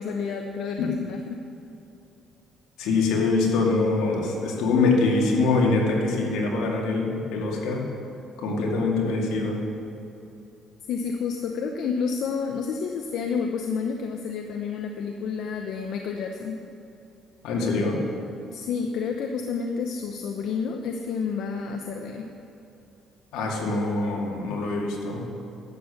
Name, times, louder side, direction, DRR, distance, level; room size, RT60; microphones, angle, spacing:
voice 1, 0.0-1.4 10.9-16.6 18.5-22.3, left 5 dB, 75° left, 4 dB, 0.8 m, -30 dB
voice 2, 2.8-7.8 8.4-9.6 17.4-18.0 23.3-25.3, left 3 dB, 90° left, -1 dB, 2.3 m, -24 dB
12.0 x 8.6 x 7.1 m, 2.8 s
cardioid pair, 110°, 0 cm